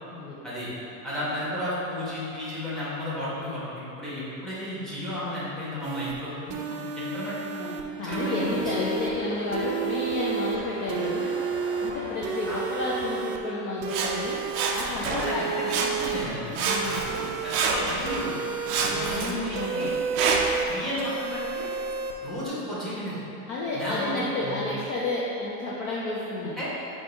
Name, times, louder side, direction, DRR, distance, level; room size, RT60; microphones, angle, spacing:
voice 1, 1.0-6.5 7.0-7.7 8.0-8.5 12.5-12.6 15.0-18.3 18.7-19.9 20.7-21.7 22.2-23.2 23.7-24.6 26.5-26.7, equal, ahead, -9 dB, 1.1 m, -33 dB
sound 1, 5.8-6.1 6.5-7.8 8.1-9.1 9.5-10.6 10.9-11.9 12.2-13.4 13.8-14.8 15.2-16.3 16.6-17.7 18.0-19.2 19.5-20.7 21.0-22.1, right 7 dB, 85° right, 0.6 m, -32 dB
voice 2, 6.7-7.1 8.0-11.3 11.8-14.4 14.7-15.7 16.6-17.0 19.0-19.9 23.5-26.6, left 2 dB, 35° left, -5 dB, 0.5 m, -31 dB
sound 2, 8.1-13.2, left 1 dB, 60° left, 1.4 m, -41 dB
Sawing, 13.9-15.4 15.7-16.3 16.5-18.2 18.7-20.7 21.3-21.4, right 4 dB, 40° right, 0.4 m, -28 dB
5.1 x 2.4 x 3.9 m, 2.9 s
supercardioid pair, 130°, 43 cm